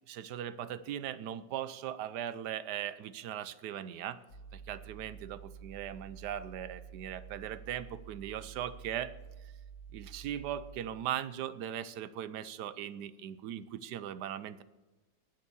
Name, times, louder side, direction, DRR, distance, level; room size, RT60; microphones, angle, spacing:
voice 1, 0.1-4.2 4.5-9.1 9.9-14.6, right 10 dB, 70° right, 15 dB, 1.2 m, -39 dB
sound 1, 4.3-10.8, right 7 dB, 55° left, 1.8 m, -50 dB
19.5 x 6.8 x 7.0 m, 1.2 s
omnidirectional pair, 2.0 m